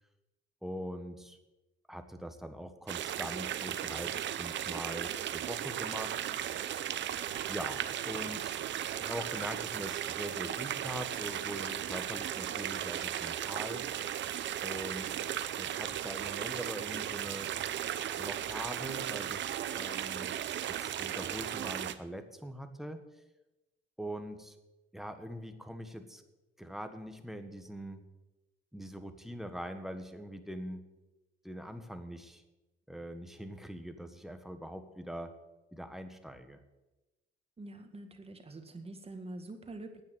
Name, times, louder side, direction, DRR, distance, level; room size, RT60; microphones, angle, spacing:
voice 1, 0.6-1.4 1.9-6.1 7.5-8.6 9.0-13.8 14.6-15.3 15.6-17.5 18.1-20.3 20.8-23.0 24.0-24.5 24.9-26.2 26.6-28.0 28.7-30.8 31.4-32.4 32.9-35.3 35.7-36.6, equal, ahead, 7 dB, 1.6 m, -42 dB
sound 1, 2.9-21.9, right 11 dB, 65° right, 0.8 m, -36 dB
voice 2, 37.6-40.0, right 2 dB, 30° right, 6 dB, 1.9 m, -45 dB
9.5 x 9.2 x 9.2 m, 1.0 s
cardioid pair, 90°, 20 cm